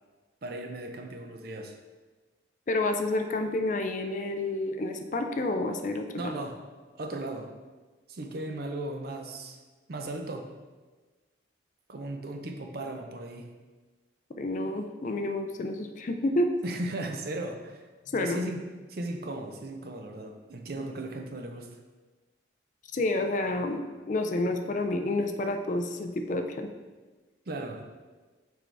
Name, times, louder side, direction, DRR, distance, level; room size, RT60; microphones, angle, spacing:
voice 1, 0.4-1.8 6.2-6.6 6.9-7.5 8.1-9.6 9.9-10.5 11.9-13.5 16.6-17.9 18.2-18.6 18.9-21.7 27.5-27.8, right 2 dB, 55° right, 4 dB, 0.5 m, -36 dB
voice 2, 2.7-6.3 14.4-16.5 18.1-18.4 22.9-26.7, left 2 dB, 40° left, 6 dB, 0.4 m, -29 dB
6.1 x 4.6 x 3.4 m, 1.3 s
head